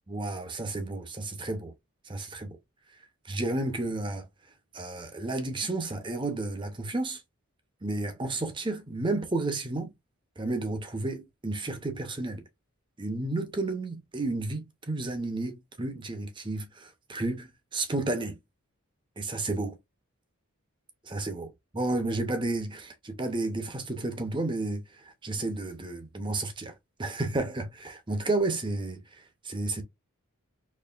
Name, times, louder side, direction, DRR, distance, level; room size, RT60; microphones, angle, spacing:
voice 1, 0.1-1.7 2.0-2.6 3.2-4.3 4.7-7.2 7.8-9.9 10.4-12.4 13.0-18.4 19.2-19.8 21.0-26.7 27.0-29.8, right 2 dB, 20° right, 0.7 m, -32 dB
4.3 x 3.0 x 2.4 m
head